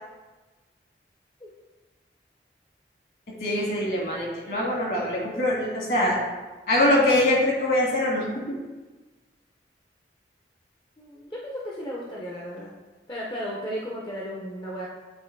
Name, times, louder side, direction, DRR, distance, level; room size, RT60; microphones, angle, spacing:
voice 1, 3.4-6.2 6.7-8.2, left 1 dB, 55° left, -3 dB, 1.8 m, -23 dB
voice 2, 11.0-12.7 13.1-14.9, equal, 25° left, -4 dB, 0.7 m, -34 dB
8.1 x 2.9 x 4.6 m, 1.2 s
head